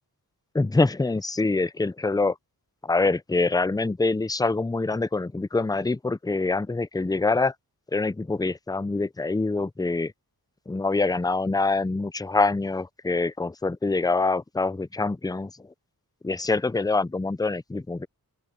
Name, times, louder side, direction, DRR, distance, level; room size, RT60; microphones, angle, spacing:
voice 1, 0.5-2.3 2.8-7.5 7.9-10.1 10.7-15.5 16.2-18.1, left 3 dB, 10° left, 0.5 m, -25 dB
open air
wide cardioid pair, 140°, 37 cm